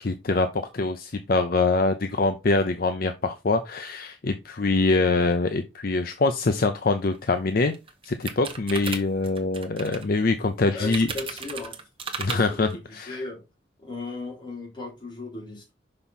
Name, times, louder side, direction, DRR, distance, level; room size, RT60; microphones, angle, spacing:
voice 1, 0.0-7.7 8.0-11.1 12.2-12.7 13.0-13.2, left 3 dB, 50° left, 8 dB, 0.6 m, -24 dB
sound 1, 7.1-7.2 7.6-10.1 10.9-12.4, right 5 dB, 30° right, 1.2 m, -35 dB
voice 2, 10.7-11.8 12.1-13.4 13.8-15.7, left 3 dB, 25° left, -3 dB, 3.4 m, -37 dB
5.9 x 5.4 x 4.1 m, 0.26 s
head